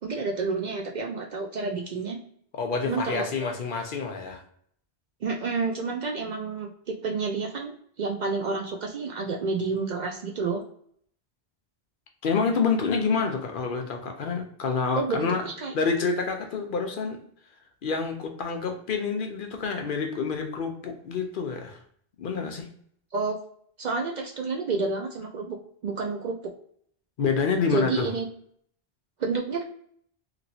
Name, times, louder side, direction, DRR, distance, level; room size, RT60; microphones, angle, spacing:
voice 1, 0.0-2.2 2.9-3.3 5.2-10.6 14.9-15.7 23.1-23.4 23.8-25.6 25.8-26.4 27.7-28.3 29.2-29.6, right 4 dB, 55° right, 1 dB, 0.5 m, -29 dB
voice 2, 2.5-4.4 12.2-15.4 15.7-17.2 17.8-21.8 22.2-22.7 27.2-28.1, left 5 dB, 60° left, 4 dB, 0.7 m, -28 dB
2.9 x 2.9 x 2.6 m, 0.64 s
omnidirectional pair, 1.1 m